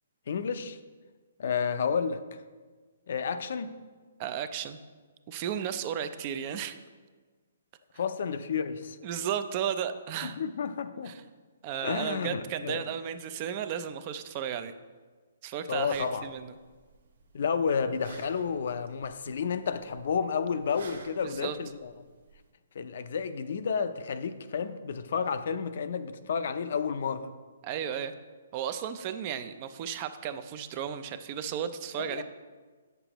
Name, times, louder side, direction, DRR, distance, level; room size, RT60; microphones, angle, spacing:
voice 1, 0.3-0.8 1.4-2.2 3.1-3.7 8.0-9.0 10.2-11.1 11.8-12.8 15.7-16.3 17.3-21.9 22.7-27.3 32.0-32.2, left 6 dB, 60° left, 11 dB, 0.5 m, -31 dB
voice 2, 4.2-4.8 5.3-6.8 9.0-10.4 11.0-11.2 11.6-14.7 15.4-16.5 21.2-21.6 27.6-28.1 28.5-32.2, right 9 dB, 30° right, 10 dB, 0.4 m, -34 dB
sound 1, 15.7-22.5, right 4 dB, 75° right, 1.0 m, -54 dB
8.9 x 6.7 x 3.0 m, 1.4 s
hypercardioid pair, 160°, 0 cm